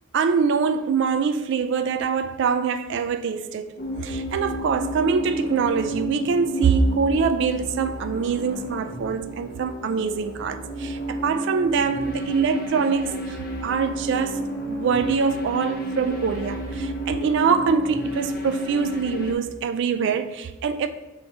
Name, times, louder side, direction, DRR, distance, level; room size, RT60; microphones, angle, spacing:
voice 1, 0.1-3.7 4.0-14.4 14.7-20.9, right 5 dB, 55° right, 0.3 m, -24 dB
sound 1, 3.8-19.3, equal, 45° left, 0.6 m, -31 dB
5.6 x 2.9 x 3.2 m
head